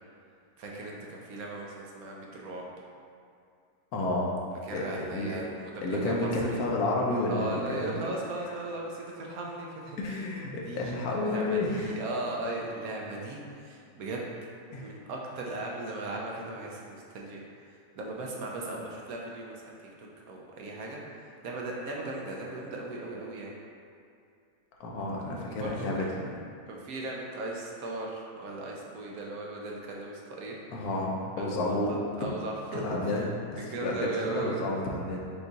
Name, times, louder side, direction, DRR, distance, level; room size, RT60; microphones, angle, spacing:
voice 1, 0.6-2.7 4.7-6.6 7.3-10.2 10.6-14.3 14.8-17.4 18.0-19.7 20.0-21.0 21.4-23.6 25.0-25.2 25.5-26.1 26.7-30.6 31.4-31.7 32.2-33.3 33.6-34.7, right 2 dB, 70° right, -2 dB, 1.0 m, -37 dB
voice 2, 3.9-4.4 4.7-5.4 5.8-8.1 8.5-8.6 10.0-11.9 14.7-14.9 24.8-26.2 30.7-32.0 32.7-33.2 33.5-35.2, left 2 dB, 70° left, -2 dB, 1.0 m, -31 dB
5.4 x 2.3 x 3.9 m, 2.4 s
omnidirectional pair, 1.8 m